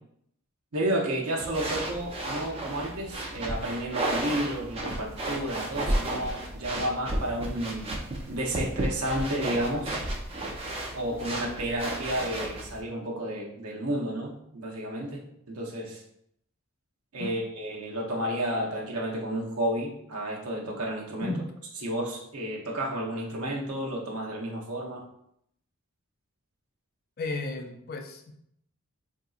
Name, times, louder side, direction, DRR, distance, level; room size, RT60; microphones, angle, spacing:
voice 1, 0.7-7.9 8.3-10.0 10.9-16.0 17.1-21.3 21.8-25.0, right 1 dB, 85° right, -2 dB, 0.8 m, -31 dB
sound 1, 1.4-12.8, right 1 dB, 25° right, 0.4 m, -33 dB
voice 2, 27.2-28.3, left 3 dB, 45° left, 4 dB, 0.4 m, -34 dB
3.7 x 2.7 x 2.3 m, 0.73 s
head